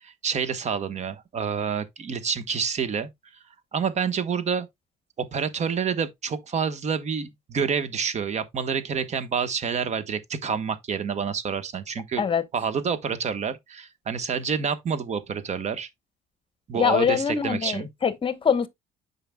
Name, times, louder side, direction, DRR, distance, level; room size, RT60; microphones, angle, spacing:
voice 1, 0.0-3.1 3.7-4.7 5.3-12.2 12.5-15.9 16.7-17.9, right 6 dB, 40° right, 1.2 m, -28 dB
voice 2, 16.7-18.7, left 7 dB, 30° left, 1.0 m, -23 dB
9.0 x 5.8 x 2.2 m
cardioid pair, 110°, 17 cm